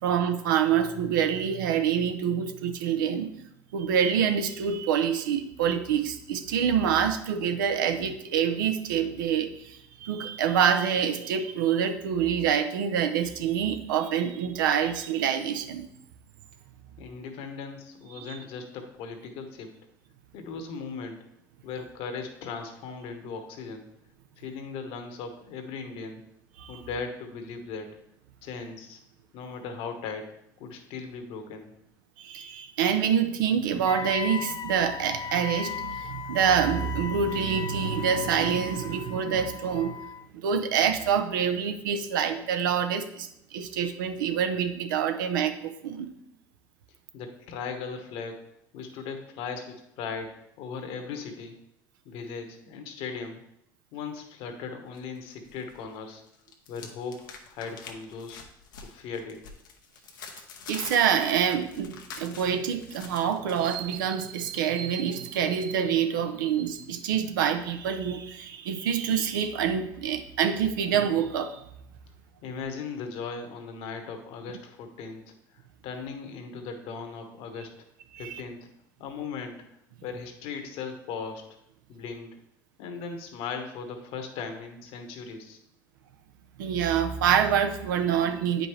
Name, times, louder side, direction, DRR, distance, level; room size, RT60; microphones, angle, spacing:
voice 1, 0.0-3.3 3.7-15.9 18.2-18.4 26.6-26.8 32.2-40.0 40.3-46.1 60.7-71.7 78.1-78.4 86.6-88.7, right 8 dB, 85° right, 8 dB, 0.6 m, -26 dB
voice 2, 17.0-19.7 20.3-21.2 21.6-23.9 24.4-26.2 26.7-27.9 28.4-29.0 29.3-30.3 30.6-31.7 47.1-48.4 48.7-51.6 52.0-53.4 53.9-56.2 56.7-58.4 58.8-59.4 72.4-77.7 78.2-78.7 79.0-79.6 80.0-81.5 81.9-82.3 82.8-85.6, left 5 dB, 70° left, 5 dB, 1.2 m, -38 dB
Wind instrument woodwind instrument, 33.8-40.3, left 7 dB, 40° left, 0.4 m, -37 dB
sound 1, 54.9-55.8 56.1-64.0, left 5 dB, 90° left, 0.9 m, -46 dB
8.7 x 5.2 x 3.2 m, 0.77 s
hypercardioid pair, 75°, 11 cm